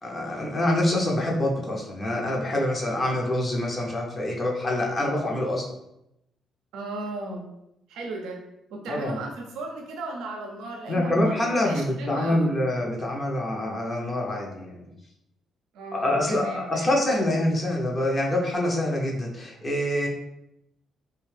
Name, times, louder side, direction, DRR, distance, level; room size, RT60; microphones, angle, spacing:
voice 1, 0.0-5.7 8.9-9.2 10.9-14.9 15.9-20.1, left 1 dB, 35° left, -1 dB, 0.6 m, -26 dB
voice 2, 6.7-7.5 7.9-8.4 8.7-12.6 15.7-17.0, right 2 dB, 90° right, 1 dB, 0.4 m, -36 dB
2.5 x 2.2 x 3.3 m, 0.83 s
cardioid pair, 90°, 0 cm